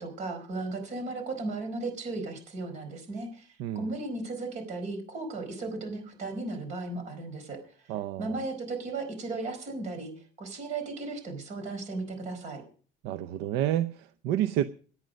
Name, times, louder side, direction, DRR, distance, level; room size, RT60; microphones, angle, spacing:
voice 1, 0.0-12.6, right 3 dB, 40° right, 4.5 m, -36 dB
voice 2, 7.9-8.4 13.0-14.6, right 12 dB, 65° right, 0.7 m, -29 dB
17.0 x 9.7 x 5.3 m
cardioid pair, 170°, 18 cm